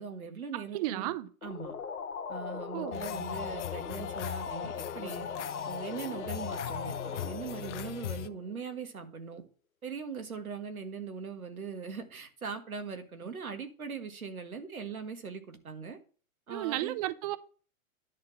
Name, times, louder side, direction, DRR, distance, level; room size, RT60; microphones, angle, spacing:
voice 1, 0.0-1.1 1.4-1.7 2.3-5.3 5.7-9.4 9.8-16.0 16.5-16.9, right 5 dB, 85° right, 1.8 m, -40 dB
voice 2, 0.5-1.3 2.7-3.0 16.5-17.4, right 15 dB, 30° right, 0.5 m, -33 dB
sound 1, 1.4-8.8, left 6 dB, 85° left, 1.3 m, -39 dB
sound 2, 2.9-8.3, left 13 dB, 60° left, 0.7 m, -41 dB
10.5 x 3.7 x 7.2 m
hypercardioid pair, 115°, 41 cm